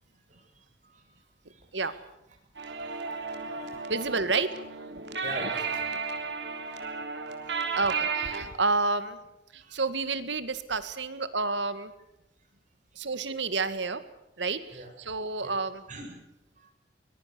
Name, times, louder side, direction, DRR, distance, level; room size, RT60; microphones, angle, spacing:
voice 1, 0.3-1.2 1.5-1.6 1.9-2.0 2.6-3.9 5.1-6.8 7.5-7.6 9.6-9.8 13.5-13.6 14.4-14.9 15.4-15.5 15.9-16.1 16.6-16.7, right 1 dB, 45° right, 1 dB, 7.9 m, -45 dB
sound 1, 2.5-8.4, right 5 dB, 70° right, 3.5 m, -33 dB
voice 2, 3.9-4.5 4.9-5.2 5.9-6.0 7.7-9.2 9.5-11.9 13.0-14.0 14.4-15.8, right 3 dB, 85° right, 13 dB, 1.9 m, -30 dB
24.0 x 21.5 x 6.9 m, 0.88 s
head